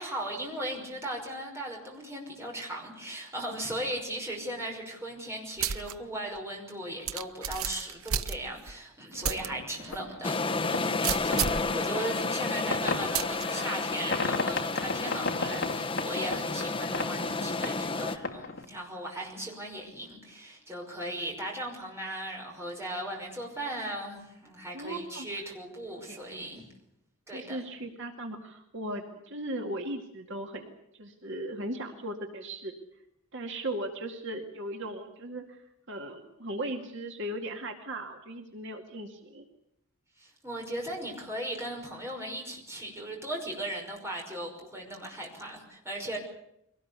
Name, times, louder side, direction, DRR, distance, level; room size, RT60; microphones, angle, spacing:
voice 1, 0.0-26.6 27.3-27.6 40.2-46.2, right 1 dB, 10° right, 0 dB, 5.8 m, -37 dB
sound 1, 5.6-5.9 6.4-6.5 7.1-8.7 9.2-9.5 9.9-10.0 11.0-11.7 13.1-13.4, right 8 dB, 75° right, 0.8 m, -31 dB
sound 2, 9.1-18.6, left 3 dB, 60° left, 2.2 m, -36 dB
sound 3, 10.2-18.2, left 3 dB, 25° left, 0.9 m, -31 dB
voice 2, 24.7-25.3 26.1-26.6 27.3-32.7 33.3-35.6 35.9-39.5, right 1 dB, 60° right, 3 dB, 2.3 m, -37 dB
24.0 x 18.5 x 8.3 m, 0.79 s
head